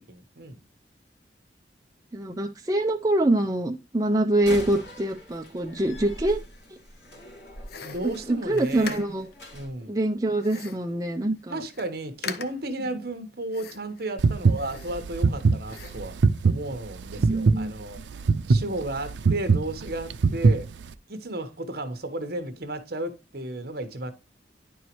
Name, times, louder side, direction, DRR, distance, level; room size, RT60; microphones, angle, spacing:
voice 1, 0.1-0.6 7.8-9.0 9.5-10.0 11.5-16.2 16.4-18.0 18.5-20.7 21.1-24.1, right 1 dB, 60° right, 1.2 m, -33 dB
voice 2, 2.1-6.4 6.7-6.8 8.0-9.3 9.9-11.6 17.2-17.7, right 1 dB, 20° right, 0.6 m, -25 dB
Slam, 4.3-9.7, equal, 80° left, 2.8 m, -42 dB
sound 1, 7.7-9.3 10.4-10.9 11.4-11.5 11.7-11.9 12.2-12.8 13.5-14.0 14.5-15.3 15.7-16.1, left 6 dB, 60° left, 0.7 m, -40 dB
sound 2, 14.2-20.9, right 4 dB, 90° right, 0.5 m, -22 dB
10.0 x 4.6 x 3.0 m
head